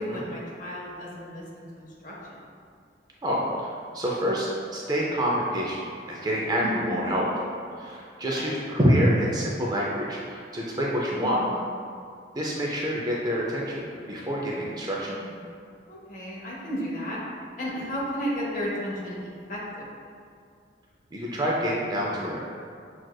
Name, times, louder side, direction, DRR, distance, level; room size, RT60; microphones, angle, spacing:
voice 1, 0.0-2.1 6.6-7.1 8.2-8.5 11.2-11.6 15.1-15.4 15.9-17.2 17.6-19.9, equal, 45° left, -5 dB, 0.8 m, -33 dB
voice 2, 3.2-4.5 4.7-5.8 6.1-7.2 7.8-11.4 12.4-15.1 21.1-22.4, equal, 20° right, -4 dB, 0.4 m, -27 dB
6.1 x 2.4 x 2.3 m, 2.3 s
head